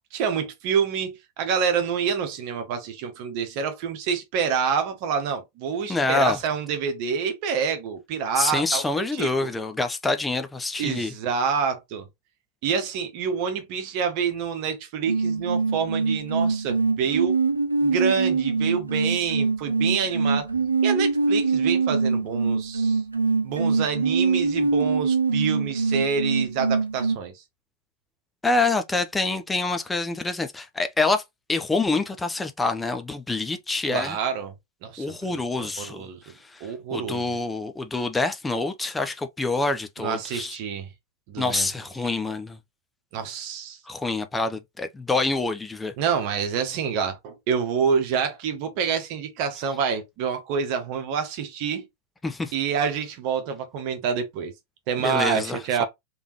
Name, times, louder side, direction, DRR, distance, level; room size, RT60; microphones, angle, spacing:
voice 1, 0.1-9.5 10.8-12.1 12.6-17.4 17.8-20.5 20.8-23.0 23.4-27.3 33.9-34.5 34.8-36.2 36.6-37.3 40.0-40.9 41.3-41.7 43.1-43.8 46.0-51.8 52.5-54.5 54.9-55.9, right 6 dB, 45° right, 1.1 m, -27 dB
voice 2, 5.9-6.4 8.4-11.1 28.4-31.2 31.5-34.2 35.0-36.0 36.5-40.6 41.4-42.6 43.9-45.9 52.2-52.5 55.0-55.8, left 3 dB, 10° left, 0.6 m, -26 dB
sound 1, 15.1-27.2, right 4 dB, 80° right, 0.4 m, -24 dB
3.5 x 3.4 x 3.0 m
figure-of-eight pair, 90°, 0 cm